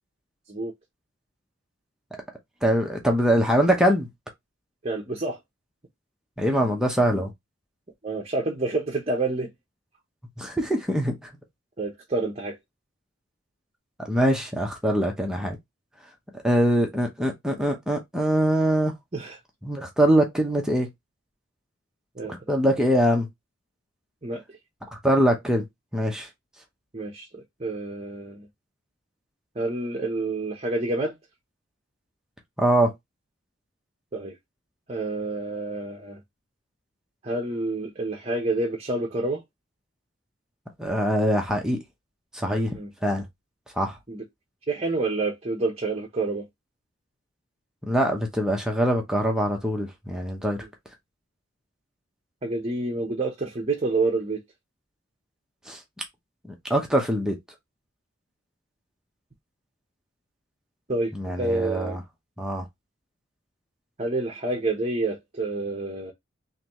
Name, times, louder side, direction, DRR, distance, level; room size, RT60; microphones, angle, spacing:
voice 1, 2.6-4.1 6.4-7.3 10.4-11.3 14.1-15.6 16.4-18.9 19.6-20.9 22.3-23.3 25.0-25.6 25.9-26.3 32.6-32.9 40.8-41.8 42.3-42.7 43.0-43.2 43.8-44.0 47.8-50.6 55.7-55.8 56.7-57.4 61.1-62.0 62.4-62.7, equal, 5° right, 0.8 m, -23 dB
voice 2, 4.8-5.4 8.0-9.5 11.8-12.6 19.1-19.4 22.1-22.6 24.2-24.6 26.9-28.5 29.5-31.2 34.1-34.3 34.9-36.2 37.2-39.4 42.7-42.9 44.1-44.2 44.7-46.5 50.6-50.7 52.4-54.4 60.9-62.0 64.0-66.1, right 2 dB, 30° right, 0.9 m, -28 dB
4.0 x 3.1 x 3.0 m
head